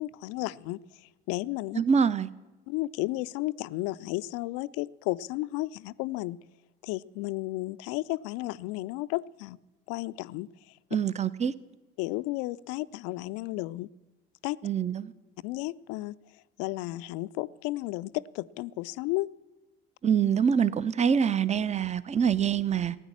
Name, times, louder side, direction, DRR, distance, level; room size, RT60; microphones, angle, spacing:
voice 1, 0.0-1.8 2.7-6.4 6.8-9.6 9.9-10.5 12.0-13.9 14.4-14.6 15.4-16.2 16.6-19.3, left 19 dB, 55° left, 18 dB, 0.5 m, -33 dB
voice 2, 1.8-2.3 10.9-11.5 14.6-15.1 20.0-23.0, right 7 dB, 25° right, 18 dB, 0.6 m, -25 dB
16.0 x 9.5 x 7.2 m, 1.1 s
figure-of-eight pair, 50°, 29 cm